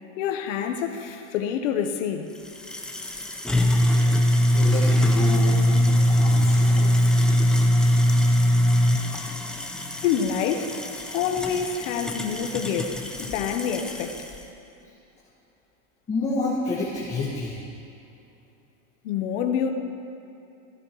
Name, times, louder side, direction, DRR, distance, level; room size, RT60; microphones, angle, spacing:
voice 1, 0.2-2.3 10.0-10.8 11.1-14.2 19.0-19.7, left 8 dB, 70° left, 6 dB, 1.1 m, -27 dB
sound 1, 2.3-14.4, equal, ahead, 0.4 m, -22 dB
voice 2, 4.5-6.9 16.1-17.6, left 3 dB, 20° left, -8 dB, 1.6 m, -28 dB
15.5 x 11.0 x 3.1 m, 2.7 s
supercardioid pair, 145°, 38 cm